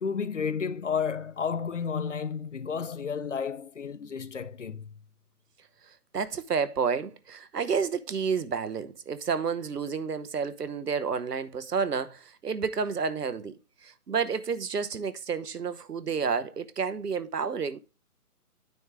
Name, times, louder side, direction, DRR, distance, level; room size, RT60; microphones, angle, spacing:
voice 1, 0.0-4.9, left 6 dB, 55° left, 0.5 m, -32 dB
voice 2, 6.1-17.8, right 6 dB, 85° right, 0.9 m, -30 dB
9.3 x 3.6 x 4.7 m
figure-of-eight pair, 160°, 46 cm